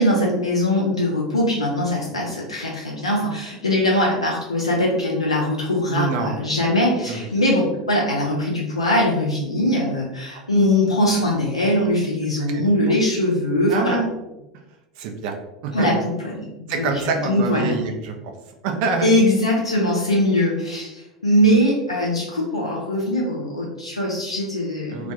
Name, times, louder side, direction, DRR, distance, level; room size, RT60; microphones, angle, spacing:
voice 1, 0.0-14.0 15.7-16.5 16.8-17.8 19.0-25.1, left 1 dB, 90° left, -3 dB, 0.4 m, -21 dB
voice 2, 5.9-6.4 7.1-7.2 12.5-12.6 13.7-14.1 15.0-15.3 15.6-15.9 16.7-18.1 18.6-19.1 24.9-25.1, right 4 dB, 55° right, 3 dB, 0.4 m, -25 dB
2.2 x 2.2 x 2.7 m, 0.98 s
figure-of-eight pair, 80°, 3 cm